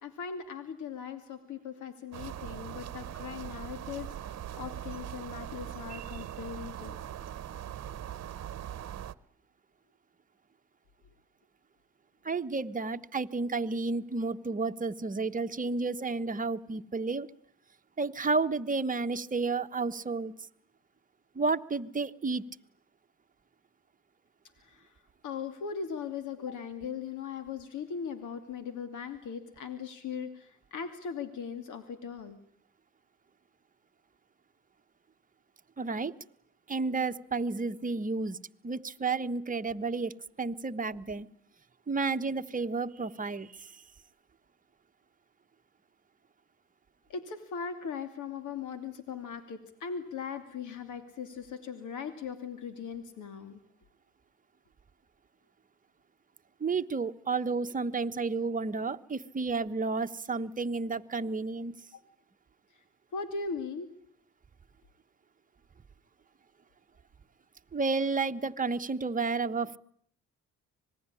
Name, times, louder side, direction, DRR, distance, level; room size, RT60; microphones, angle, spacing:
voice 1, 0.0-7.0 24.6-24.9 25.2-32.4 47.1-53.6 61.9-62.0 63.1-63.9, left 6 dB, 80° left, 9 dB, 2.7 m, -39 dB
sound 1, 2.1-9.1, right 11 dB, 60° right, 1.1 m, -41 dB
voice 2, 12.2-17.3 18.0-20.3 21.3-22.4 35.8-36.1 36.7-38.4 38.6-40.1 40.4-41.3 41.9-43.7 56.6-61.8 67.7-69.8, right 4 dB, 25° right, 8 dB, 1.2 m, -31 dB
26.0 x 20.0 x 9.8 m, 0.64 s
cardioid pair, 90°, 30 cm